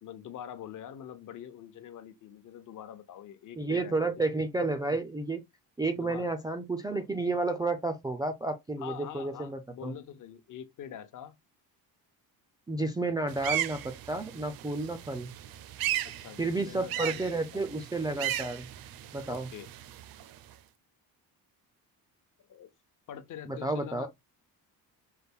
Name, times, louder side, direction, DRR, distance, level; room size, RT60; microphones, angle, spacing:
voice 1, 0.0-4.1 5.9-6.3 8.8-11.4 16.0-17.7 19.3-19.7 22.5-22.7 23.1-24.1, left 10 dB, 50° left, 0.8 m, -44 dB
voice 2, 3.6-5.4 5.8-9.9 12.7-15.3 16.4-18.7 19.1-19.5 23.5-24.1, right 2 dB, 10° right, 0.3 m, -31 dB
sound 1, 13.3-20.5, right 12 dB, 65° right, 0.6 m, -36 dB
5.6 x 2.2 x 3.5 m
cardioid pair, 150°, 39 cm